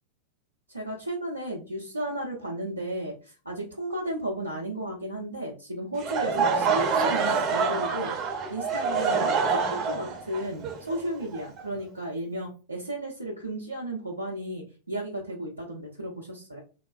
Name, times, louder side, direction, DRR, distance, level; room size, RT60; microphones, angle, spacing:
voice 1, 0.7-8.1 8.5-16.6, right 1 dB, 85° right, -3 dB, 0.6 m, -34 dB
Laughter / Crowd, 5.9-11.9, right 5 dB, 35° right, 0.6 m, -26 dB
3.5 x 2.2 x 2.2 m, 0.35 s
figure-of-eight pair, 90°, 0 cm